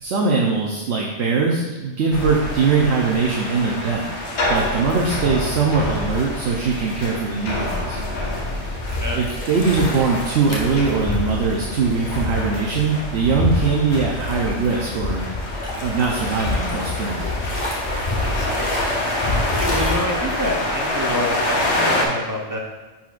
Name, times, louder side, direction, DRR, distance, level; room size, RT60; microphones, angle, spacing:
voice 1, 0.0-4.1 4.5-8.0 9.1-15.2 15.8-17.2, right 4 dB, 65° right, -1 dB, 1.0 m, -21 dB
sound 1, 2.1-22.0, left 1 dB, 65° left, 1.2 m, -27 dB
sound 2, 8.3-20.0, left 2 dB, 25° left, 1.4 m, -28 dB
voice 2, 8.9-9.2 9.7-9.8 18.2-18.8 19.6-22.6, left 1 dB, 20° right, -1 dB, 0.6 m, -28 dB
10.0 x 4.3 x 2.5 m, 1.2 s
omnidirectional pair, 1.3 m